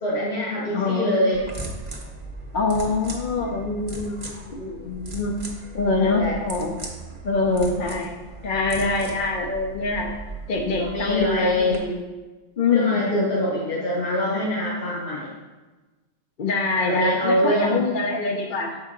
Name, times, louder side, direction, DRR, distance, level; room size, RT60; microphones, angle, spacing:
voice 1, 0.0-1.4 6.0-6.3 10.7-11.8 12.7-15.3 16.9-17.9, left 1 dB, 70° left, -7 dB, 1.7 m, -24 dB
voice 2, 0.7-1.2 2.5-5.3 5.7-6.8 7.2-10.1 10.5-12.1 12.6-13.1 16.4-18.8, left 3 dB, 55° left, 0 dB, 0.7 m, -24 dB
sound 1, 1.3-11.8, right 2 dB, 30° right, 0.9 m, -38 dB
6.6 x 4.5 x 3.7 m, 1.2 s
omnidirectional pair, 1.2 m